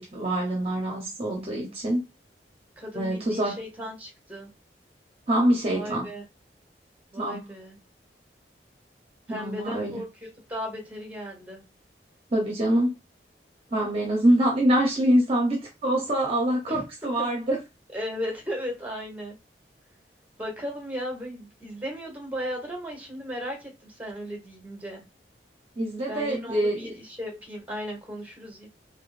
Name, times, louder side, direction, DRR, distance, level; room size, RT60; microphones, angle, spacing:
voice 1, 0.0-2.1 2.9-3.6 5.3-6.1 7.2-7.4 9.3-10.0 12.3-12.9 13.7-17.6 25.8-26.9, right 1 dB, 35° right, 0.7 m, -25 dB
voice 2, 2.8-4.5 5.7-6.2 7.1-7.8 9.3-10.0 10.5-11.6 16.7-16.8 17.2-17.3 17.9-19.4 20.4-25.0 26.1-28.7, equal, 10° right, 1.1 m, -36 dB
3.6 x 2.7 x 2.4 m
head